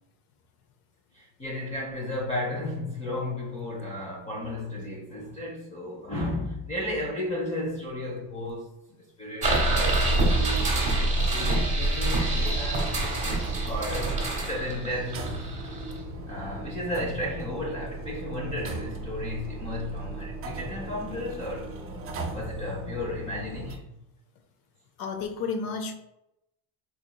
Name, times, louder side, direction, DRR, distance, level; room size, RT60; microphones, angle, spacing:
voice 1, 1.1-8.7 9.2-10.7 11.1-13.0 13.7-15.4 16.3-21.7 22.3-23.8, left 1 dB, 15° left, 0.5 m, -34 dB
sound 1, 9.4-16.0, right 2 dB, 20° right, 1.0 m, -25 dB
sound 2, 12.2-23.8, right 2 dB, 35° right, 0.4 m, -37 dB
voice 2, 25.0-25.9, left 4 dB, 55° left, 0.7 m, -32 dB
4.1 x 3.0 x 2.2 m
cardioid pair, 150°, 42 cm